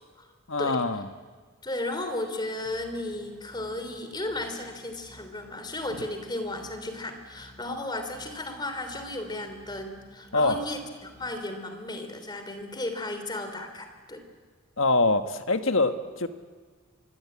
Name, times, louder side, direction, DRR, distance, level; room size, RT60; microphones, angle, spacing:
voice 1, 0.5-1.1 10.3-10.6 14.8-16.3, left 3 dB, 70° left, 9 dB, 1.5 m, -24 dB
voice 2, 1.6-14.3, left 1 dB, 20° left, 7 dB, 3.1 m, -34 dB
sound 1, 2.6-11.3, equal, 5° right, 6.0 m, -55 dB
26.0 x 21.5 x 8.7 m, 1.5 s
head